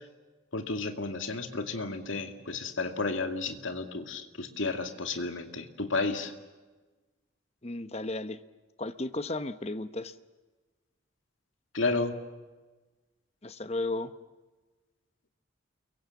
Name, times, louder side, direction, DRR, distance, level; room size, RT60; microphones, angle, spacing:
voice 1, 0.5-6.3 11.7-12.1, left 3 dB, 75° left, 6 dB, 2.4 m, -32 dB
voice 2, 7.6-8.4 8.8-10.1 13.4-14.1, left 2 dB, 30° left, 12 dB, 1.0 m, -34 dB
29.5 x 23.0 x 7.2 m, 1.2 s
head